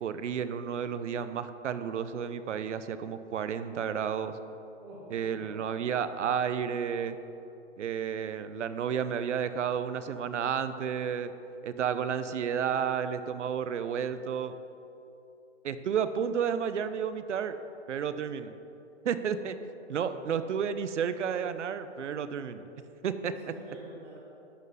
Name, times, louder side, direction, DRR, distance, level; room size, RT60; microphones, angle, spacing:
voice 1, 0.0-4.4 5.1-7.2 7.8-11.3 11.6-14.6 15.6-17.6 17.9-18.6 19.0-19.6 19.9-22.6 23.0-23.5, right 7 dB, 75° right, 12 dB, 0.7 m, -31 dB
voice 2, 4.8-5.7 19.3-19.4 20.0-20.4 23.5-24.2, right 1 dB, 5° right, -5 dB, 0.5 m, -47 dB
11.5 x 3.9 x 7.7 m, 2.8 s
hypercardioid pair, 165°, 36 cm